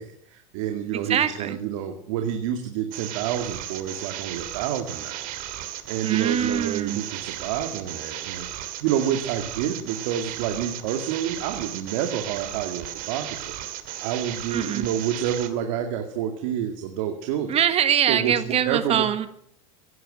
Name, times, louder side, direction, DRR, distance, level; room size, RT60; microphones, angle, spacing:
voice 1, 0.0-5.3 5.8-13.5 14.0-17.5 18.1-19.0, right 9 dB, 75° right, 5 dB, 2.3 m, -28 dB
voice 2, 0.9-1.6 6.0-7.0 14.5-14.9 17.5-19.3, right 9 dB, 35° right, 11 dB, 1.7 m, -23 dB
sound 1, 2.9-15.5, right 12 dB, 55° right, 2.5 m, -35 dB
17.0 x 11.0 x 7.7 m, 0.69 s
supercardioid pair, 115°, 18 cm